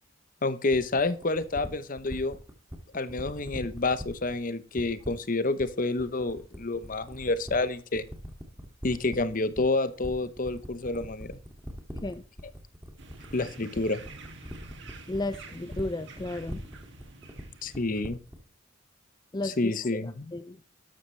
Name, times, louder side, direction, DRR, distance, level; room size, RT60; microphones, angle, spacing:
voice 1, 0.4-2.4 2.9-8.1 8.8-11.4 13.3-14.0 17.6-18.2 19.4-20.3, left 2 dB, 40° left, 13 dB, 0.9 m, -29 dB
sound 1, 0.7-18.5, equal, 10° right, 2.3 m, -41 dB
sound 2, 13.0-18.0, right 2 dB, 60° right, 2.4 m, -48 dB
voice 2, 15.1-16.6 19.3-19.7 20.3-20.6, left 2 dB, 20° left, 11 dB, 0.4 m, -33 dB
13.0 x 11.5 x 3.3 m, 0.38 s
head